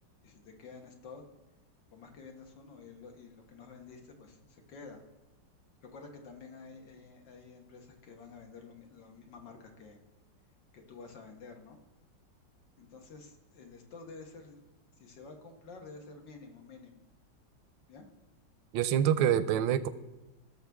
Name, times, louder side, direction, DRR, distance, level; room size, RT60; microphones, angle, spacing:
voice 1, 0.2-1.2 1.9-5.0 5.8-10.0 10.7-11.8 12.8-14.6 15.0-17.1 17.9-18.1, left 4 dB, 70° left, 3 dB, 2.1 m, -50 dB
voice 2, 18.7-19.9, right 9 dB, 80° right, 15 dB, 1.3 m, -26 dB
17.5 x 6.9 x 3.5 m, 1.1 s
omnidirectional pair, 2.1 m